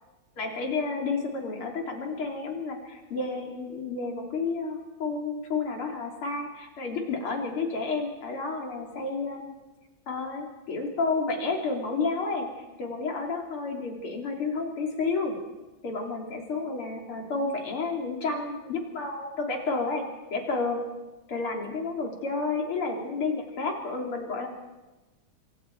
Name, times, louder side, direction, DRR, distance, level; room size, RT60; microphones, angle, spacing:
voice 1, 0.4-9.5 10.1-15.4 15.8-20.0 20.3-20.8 21.3-24.5, left 3 dB, 85° left, 1 dB, 4.0 m, -31 dB
26.5 x 26.0 x 4.6 m, 1.1 s
omnidirectional pair, 2.3 m